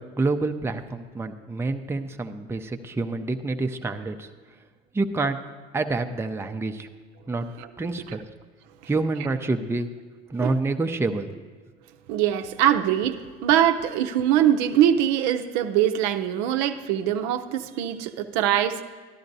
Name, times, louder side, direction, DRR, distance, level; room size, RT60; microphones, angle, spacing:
voice 1, 0.0-4.3 4.9-5.4 5.7-6.9 7.3-7.5 7.8-8.2 8.9-9.9 10.3-11.4, right 3 dB, 10° right, 5 dB, 0.5 m, -27 dB
voice 2, 12.1-18.8, right 10 dB, 65° right, 7 dB, 0.6 m, -23 dB
13.0 x 11.5 x 2.7 m, 1.5 s
hypercardioid pair, 70°, 31 cm